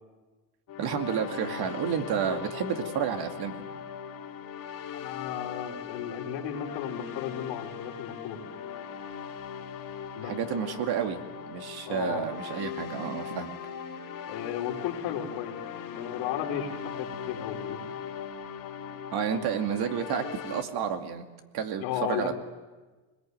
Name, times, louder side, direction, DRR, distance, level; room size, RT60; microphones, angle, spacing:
sound 1, 0.7-20.6, left 7 dB, 45° left, 2.7 m, -39 dB
voice 1, 0.8-3.6 10.2-11.2 11.5-13.6 19.1-21.3 21.5-22.3, right 8 dB, 55° right, 6 dB, 2.5 m, -30 dB
voice 2, 4.9-8.4 10.1-10.8 11.9-12.3 14.3-15.5 15.9-17.8 21.8-22.3, left 9 dB, 75° left, 2 dB, 3.9 m, -34 dB
23.0 x 21.0 x 9.5 m, 1.3 s
cardioid pair, 130°, 45 cm